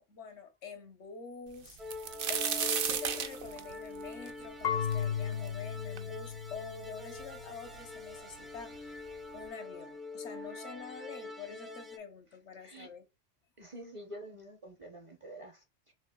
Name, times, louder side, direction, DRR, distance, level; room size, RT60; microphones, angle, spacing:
voice 1, 0.0-1.8 2.3-9.0 9.3-13.0, left 5 dB, 70° left, 1.2 m, -46 dB
sound 1, 1.6-5.5 6.0-6.1 6.8-6.9 7.2-7.9 8.7-8.8 9.2-9.4, right 7 dB, 55° right, 0.7 m, -34 dB
sound 2, 1.8-12.0, left 3 dB, ahead, 0.6 m, -45 dB
Marimba xylophone / Wood, 4.6-7.5, left 8 dB, 50° left, 0.6 m, -36 dB
voice 2, 13.6-15.9, right 1 dB, 30° right, 0.9 m, -48 dB
6.6 x 3.3 x 2.3 m
omnidirectional pair, 1.3 m